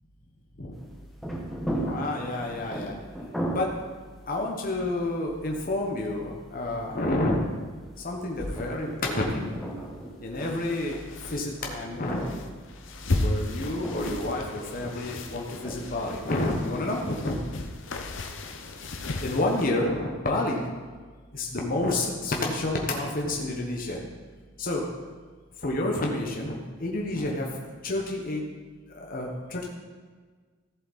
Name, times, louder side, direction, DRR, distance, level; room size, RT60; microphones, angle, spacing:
sound 1, 0.7-17.0, right 1 dB, ahead, 1.2 m, -38 dB
voice 1, 1.8-2.9 3.5-3.7 4.3-7.4 8.0-9.6 10.2-12.2 13.2-17.4 19.2-20.6 21.3-24.0 24.6-24.8 25.6-27.5 27.8-28.4 28.9-29.7, left 2 dB, 40° left, 0 dB, 1.1 m, -29 dB
sound 2, 8.4-19.7, left 2 dB, 60° left, 0.8 m, -35 dB
14.5 x 7.5 x 4.2 m, 1.5 s
head